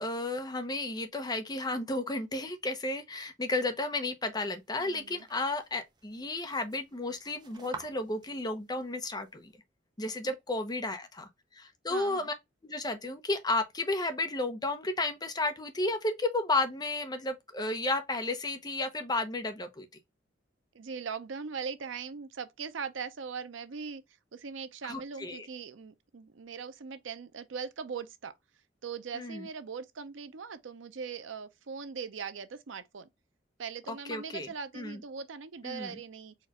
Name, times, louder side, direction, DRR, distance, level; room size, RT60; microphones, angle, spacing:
voice 1, 0.0-9.5 10.0-12.3 12.6-19.9 24.8-25.5 29.1-29.5 33.9-34.5 34.7-35.0 35.6-36.0, left 2 dB, 20° left, 0.7 m, -33 dB
sound 1, 4.4-9.6, right 4 dB, 25° right, 0.6 m, -51 dB
voice 2, 4.8-5.3 10.2-10.3 11.9-12.3 20.7-24.0 24.3-28.3 28.8-33.1 33.6-36.3, right 6 dB, 80° right, 0.6 m, -40 dB
4.4 x 2.4 x 3.0 m
head